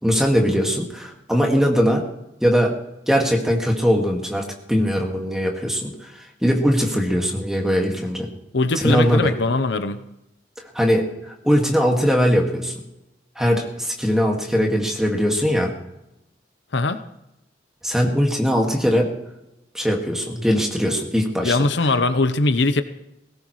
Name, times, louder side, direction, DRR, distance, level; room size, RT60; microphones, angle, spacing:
voice 1, 0.0-2.1 2.4-2.8 3.1-6.1 6.4-8.3 8.7-9.4 10.7-12.7 13.4-15.7 17.8-19.1 19.7-21.6, equal, 5° right, 0 dB, 1.9 m, -20 dB
voice 2, 8.5-10.0 16.7-17.0 21.4-22.8, left 2 dB, 85° left, 10 dB, 0.8 m, -20 dB
19.5 x 17.5 x 3.2 m, 0.89 s
head